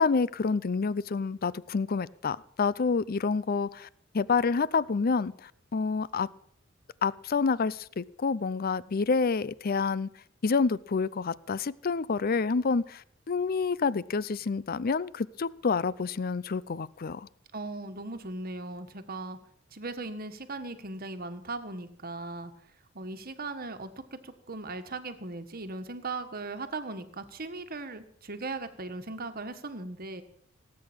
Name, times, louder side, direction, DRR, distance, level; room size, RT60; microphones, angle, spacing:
voice 1, 0.0-3.9 4.1-6.3 7.0-10.1 10.4-17.3, left 4 dB, 50° left, 20 dB, 0.5 m, -28 dB
voice 2, 17.5-19.4 19.7-22.5 22.9-30.2, right 3 dB, 50° right, 9 dB, 1.5 m, -38 dB
18.0 x 8.5 x 8.7 m, 0.65 s
head